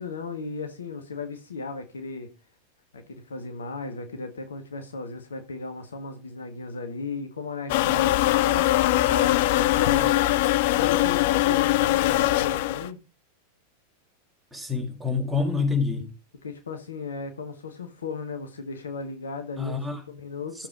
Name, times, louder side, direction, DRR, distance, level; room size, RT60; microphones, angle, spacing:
voice 1, 0.0-2.3 2.9-13.0 16.4-19.8 20.1-20.7, left 4 dB, 70° left, 1.7 m, -36 dB
sound 1, 7.7-12.9, left 16 dB, 50° left, 0.6 m, -22 dB
voice 2, 14.5-16.1 19.6-20.0 20.5-20.7, left 4 dB, ahead, 4.6 m, -27 dB
14.0 x 7.5 x 5.0 m
figure-of-eight pair, 90°, 0 cm